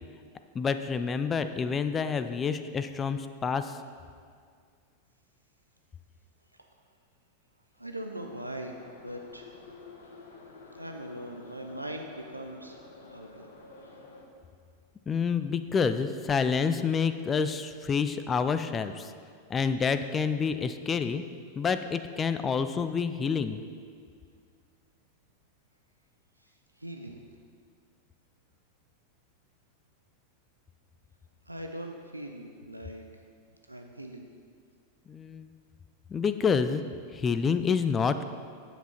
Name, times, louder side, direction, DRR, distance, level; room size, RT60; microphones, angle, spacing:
voice 1, 0.5-3.8 15.1-19.1 19.5-21.2 21.6-23.6 35.1-35.5 36.1-36.8 37.1-38.2, left 6 dB, 20° left, 10 dB, 0.4 m, -28 dB
voice 2, 7.8-9.5 10.7-13.5 26.4-27.2 31.5-33.0 33.7-34.3, right 1 dB, 85° right, 4 dB, 0.6 m, -41 dB
Subway metro underground, 8.2-14.2, left 3 dB, 65° left, 1.2 m, -50 dB
9.1 x 7.9 x 4.3 m, 2.1 s
figure-of-eight pair, 90°, 0 cm